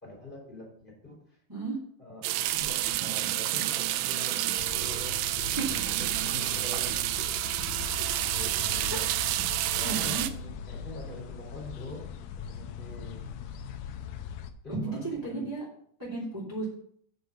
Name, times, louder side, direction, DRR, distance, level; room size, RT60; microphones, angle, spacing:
voice 1, 0.0-1.4 2.0-5.1 5.5-6.9 8.3-9.1 9.7-12.2 12.5-13.2 14.6-15.5, left 2 dB, 15° left, -3 dB, 2.5 m, -44 dB
sound 1, 2.2-10.3, right 14 dB, 85° right, 2.9 m, -29 dB
sound 2, 4.6-14.5, left 6 dB, 85° left, 2.3 m, -40 dB
voice 2, 5.5-6.0 9.8-10.2 14.7-15.0 15.2-15.6 16.1-16.6, right 3 dB, 10° right, -6 dB, 1.0 m, -34 dB
7.8 x 6.8 x 5.4 m, 0.62 s
omnidirectional pair, 5.3 m